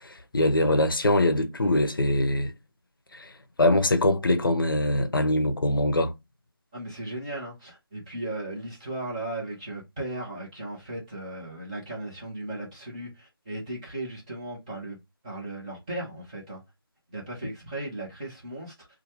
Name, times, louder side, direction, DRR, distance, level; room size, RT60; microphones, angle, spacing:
voice 1, 0.0-2.5 3.1-3.3 3.6-6.1, left 1 dB, 60° left, 0.7 m, -23 dB
voice 2, 6.7-15.0 15.2-16.6 17.1-18.9, right 1 dB, 15° right, 0.8 m, -36 dB
3.1 x 2.3 x 2.9 m
figure-of-eight pair, 165°, 13 cm